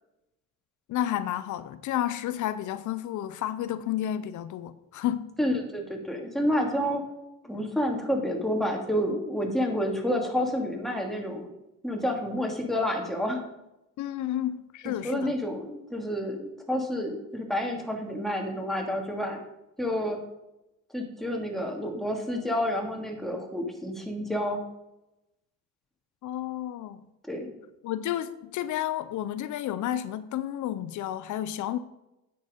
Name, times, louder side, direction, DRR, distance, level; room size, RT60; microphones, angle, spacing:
voice 1, 0.9-5.3 14.0-15.3 26.2-27.0 27.8-31.8, left 12 dB, 80° left, 0.6 m, -31 dB
voice 2, 5.4-7.0 7.4-11.5 11.8-13.4 14.8-19.4 19.8-20.2 20.9-24.6 27.3-27.5, equal, ahead, 2.6 m, -29 dB
9.3 x 7.9 x 5.1 m
cardioid pair, 90°, 30 cm